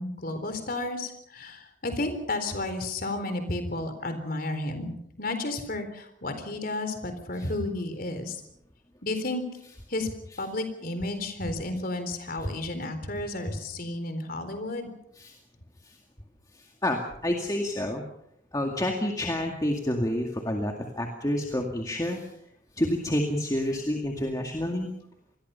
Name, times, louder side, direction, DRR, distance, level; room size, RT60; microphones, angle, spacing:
voice 1, 0.0-8.4 9.0-9.4 9.9-10.1 10.4-14.9, left 2 dB, 45° left, 9 dB, 3.9 m, -32 dB
voice 2, 16.8-18.0 18.5-22.3 22.8-24.9, left 1 dB, 20° left, 2 dB, 2.1 m, -28 dB
27.0 x 21.0 x 5.7 m, 0.76 s
head